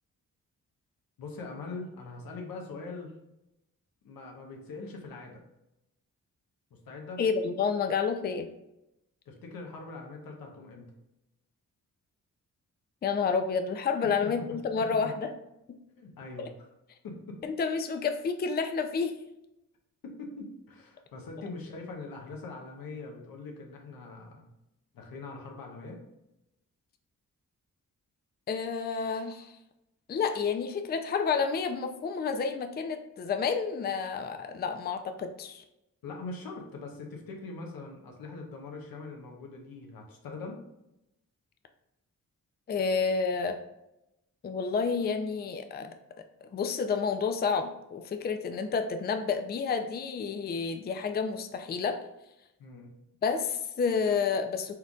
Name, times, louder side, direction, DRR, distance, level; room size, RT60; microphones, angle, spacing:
voice 1, 1.2-3.1 4.0-5.4 6.7-7.2 9.3-10.9 14.0-14.3 14.8-15.1 15.9-16.5 17.0-17.4 20.0-24.5 24.9-26.0 36.0-40.6 52.6-52.9, left 3 dB, 90° left, 0 dB, 0.9 m, -42 dB
voice 2, 7.2-8.5 13.0-15.3 16.4-16.5 17.4-19.2 28.5-29.5 30.1-35.6 42.7-43.6 44.4-45.9 46.5-52.0 53.2-54.7, left 5 dB, 30° left, 7 dB, 0.4 m, -30 dB
4.4 x 3.7 x 2.3 m, 0.89 s
cardioid pair, 70°, 34 cm